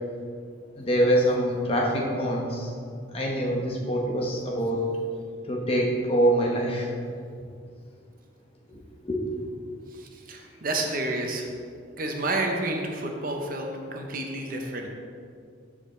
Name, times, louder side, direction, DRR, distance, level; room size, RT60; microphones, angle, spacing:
voice 1, 0.8-2.7 3.1-4.8 5.5-6.9 9.0-9.3, right 1 dB, 30° left, -2 dB, 1.0 m, -24 dB
voice 2, 9.9-11.5 12.0-14.9, right 2 dB, 45° right, 2 dB, 0.8 m, -30 dB
13.0 x 5.0 x 3.2 m, 2.2 s
head